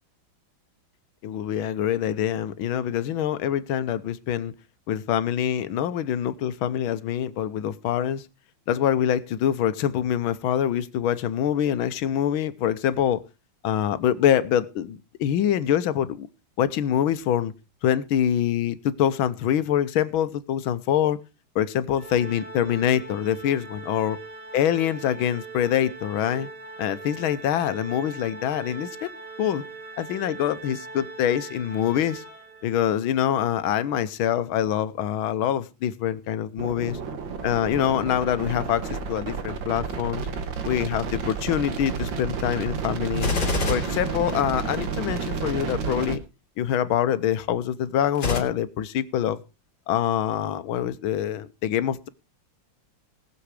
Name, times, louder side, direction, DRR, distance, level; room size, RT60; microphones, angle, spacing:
voice 1, 1.2-4.5 4.9-8.2 8.7-13.2 13.6-16.3 16.6-17.5 17.8-21.2 21.5-24.2 24.5-26.5 26.8-29.1 29.4-29.6 30.0-32.2 32.6-37.0 37.4-40.3 40.6-43.3 43.7-46.2 46.6-49.4 49.9-52.1, left 10 dB, 80° left, 1.6 m, -25 dB
Organ, 22.0-32.9, right 3 dB, 85° right, 3.2 m, -41 dB
sound 1, 36.6-46.2, right 5 dB, 65° right, 2.1 m, -31 dB
Gunshot gunfire, 43.1-44.9 48.1-48.4, left 4 dB, 50° left, 2.9 m, -27 dB
19.0 x 7.1 x 4.8 m
omnidirectional pair, 2.2 m